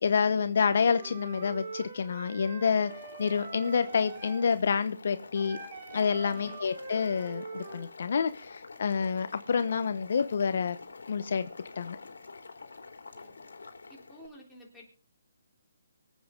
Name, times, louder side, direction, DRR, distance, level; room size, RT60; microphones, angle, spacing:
voice 1, 0.0-2.9 3.2-5.6 5.9-10.8 11.1-11.5 11.8-12.0, left 6 dB, 55° left, 11 dB, 0.9 m, -28 dB
Wind instrument woodwind instrument, 0.8-4.5 5.3-7.9, right 4 dB, 40° right, 3.6 m, -44 dB
Boiling, 2.7-14.3, left 4 dB, 85° left, 3.0 m, -48 dB
voice 2, 6.3-6.7 13.1-13.3 13.9-14.9, equal, 5° left, -4 dB, 3.5 m, -51 dB
24.0 x 8.3 x 3.8 m, 0.36 s
hypercardioid pair, 165°, 0 cm